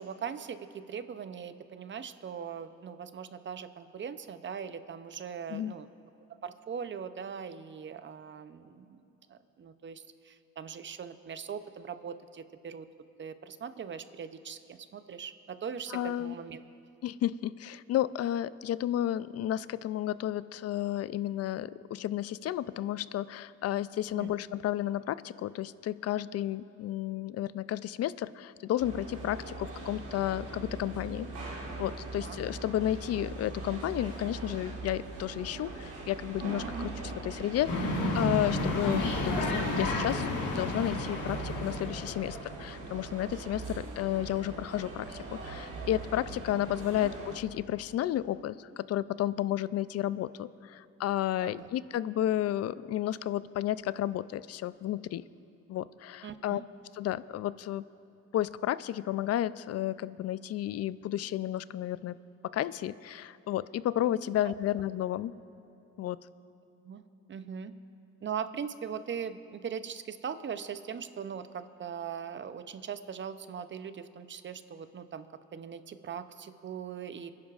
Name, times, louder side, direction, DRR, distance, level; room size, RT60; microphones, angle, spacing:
voice 1, 0.0-5.9 6.4-9.0 9.3-12.9 13.2-16.6 24.1-24.3 32.2-32.4 36.6-36.9 46.9-47.1 51.4-51.7 56.2-56.6 66.8-67.0 67.3-67.7 68.2-77.3, right 7 dB, 40° right, 11 dB, 0.6 m, -40 dB
voice 2, 15.9-16.3 17.0-40.3 40.5-55.2 55.7-56.6 57.0-57.9 58.3-62.2 62.5-65.3 66.0-66.2, left 12 dB, 55° left, 17 dB, 0.4 m, -32 dB
sound 1, 28.8-47.4, right 3 dB, 80° right, 2.9 m, -41 dB
sound 2, 37.7-42.5, left 2 dB, 80° left, 1.9 m, -31 dB
28.5 x 10.5 x 2.5 m, 2.8 s
cardioid pair, 90°, 30 cm